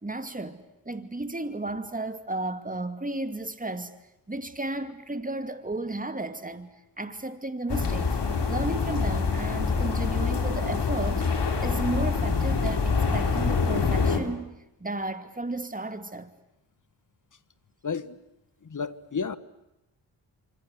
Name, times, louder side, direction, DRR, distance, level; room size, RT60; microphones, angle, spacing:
voice 1, 0.0-0.6 0.9-3.9 4.3-6.7 7.0-8.2 8.5-14.5 14.8-16.3, right 2 dB, 15° right, 2.5 m, -33 dB
sound 1, 7.7-14.2, left 4 dB, 60° left, 3.5 m, -25 dB
voice 2, 17.8-18.2 18.7-19.4, left 5 dB, 40° left, 1.4 m, -31 dB
26.0 x 25.5 x 8.1 m
supercardioid pair, 40°, 47 cm